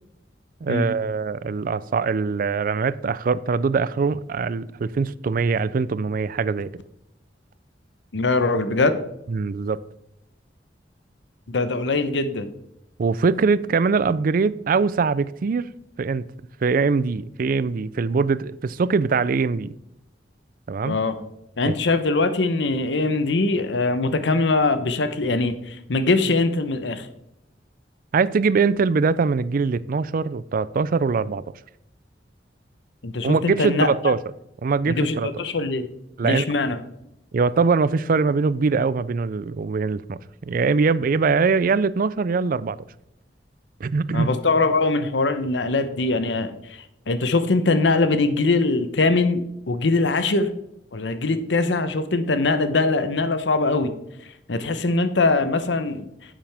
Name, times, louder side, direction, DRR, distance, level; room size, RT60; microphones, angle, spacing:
voice 1, 0.6-6.7 9.3-9.8 13.0-15.7 16.0-16.2 16.6-19.7 20.7-21.0 21.7-21.8 28.1-31.4 33.2-34.2 34.6-35.3 36.2-36.4 37.3-42.8 43.8-44.3, right 4 dB, 50° right, 0.4 m, -22 dB
voice 2, 8.1-9.0 11.5-12.5 20.8-21.2 21.6-27.1 33.0-33.9 34.9-35.9 36.2-36.8 44.1-50.5 50.9-53.9 54.5-56.1, left 3 dB, 80° left, 0.8 m, -22 dB
10.5 x 7.5 x 3.4 m
head